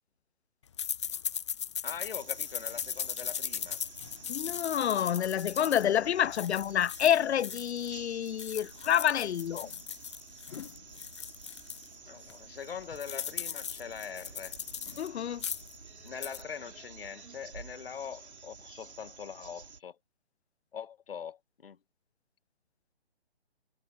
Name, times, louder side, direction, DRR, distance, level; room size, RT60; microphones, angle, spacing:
sound 1, 0.8-7.9 8.3-11.9 12.3-12.4 12.6-15.1 15.3-15.8 16.1-16.4, left 8 dB, 25° left, 0.6 m, -38 dB
voice 1, 1.8-3.8 12.1-14.6 16.0-20.0 20.7-21.8, left 7 dB, 55° left, 2.1 m, -42 dB
sound 2, 2.2-19.8, right 5 dB, 75° right, 5.0 m, -51 dB
voice 2, 4.3-9.7 10.5-10.7 15.0-15.4, left 9 dB, 75° left, 0.5 m, -28 dB
hypercardioid pair, 155°, 33 cm